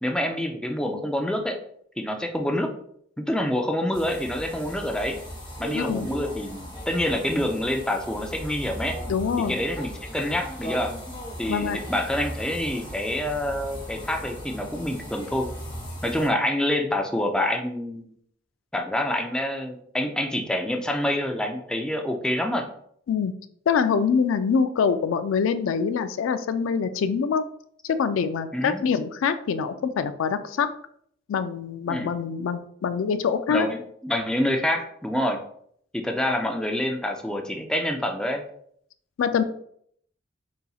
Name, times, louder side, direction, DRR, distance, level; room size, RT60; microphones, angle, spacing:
voice 1, 0.0-1.6 2.0-2.7 3.2-5.2 5.6-9.0 9.4-10.9 11.4-15.5 16.0-18.1 18.7-22.7 28.5-28.8 31.9-32.1 33.5-35.4 35.9-38.4, left 1 dB, 5° left, 3 dB, 0.4 m, -27 dB
sound 1, 3.9-16.3, equal, 25° left, 1.3 m, -37 dB
voice 2, 5.7-6.1 9.1-9.6 11.5-11.8 23.1-23.3 23.7-27.4 27.8-30.7 31.3-33.7 39.2-39.4, left 6 dB, 80° left, 10 dB, 0.3 m, -24 dB
4.1 x 4.0 x 2.3 m, 0.66 s
head